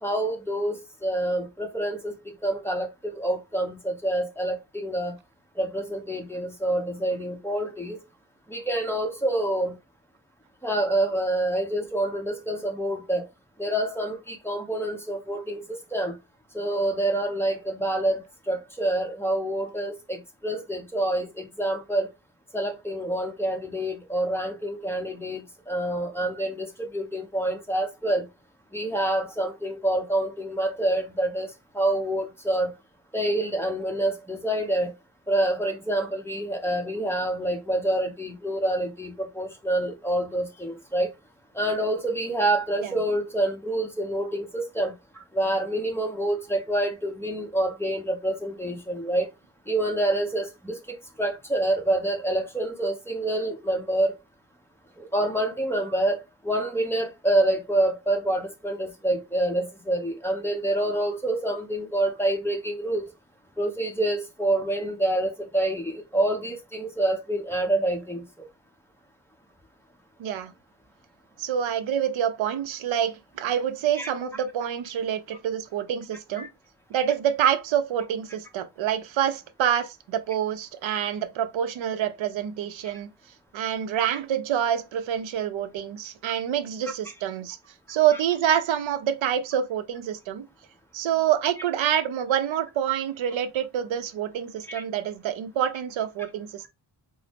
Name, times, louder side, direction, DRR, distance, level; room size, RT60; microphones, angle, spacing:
voice 1, 0.0-2.1 2.4-5.1 5.6-8.0 8.5-9.7 10.6-13.3 13.6-16.1 16.5-22.1 22.5-28.2 28.7-32.7 33.1-34.9 35.3-41.1 41.5-49.3 49.7-54.1 55.0-63.1 63.6-68.5 74.0-74.1 76.4-76.5 94.7-94.8, right 1 dB, 5° left, 0.7 m, -27 dB
voice 2, 70.2-70.5 71.4-76.5 76.9-83.1 83.5-87.6 87.9-90.4 90.9-96.7, right 9 dB, 75° right, 0.5 m, -27 dB
3.7 x 2.0 x 3.3 m
wide cardioid pair, 145°, 46 cm